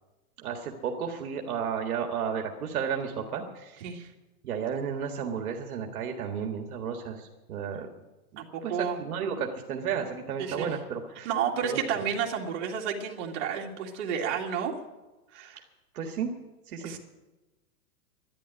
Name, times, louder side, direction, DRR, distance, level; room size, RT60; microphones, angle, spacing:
voice 1, 0.4-4.1 4.4-7.9 8.3-11.3 11.6-11.8 15.9-16.3 16.7-17.0, right 7 dB, 65° right, 3 dB, 1.8 m, -33 dB
voice 2, 8.4-9.0 10.4-10.7 11.2-14.8 15.3-15.6 16.8-17.0, right 7 dB, 45° right, 0 dB, 2.3 m, -31 dB
12.5 x 10.5 x 9.3 m, 1.1 s
supercardioid pair, 160°, 46 cm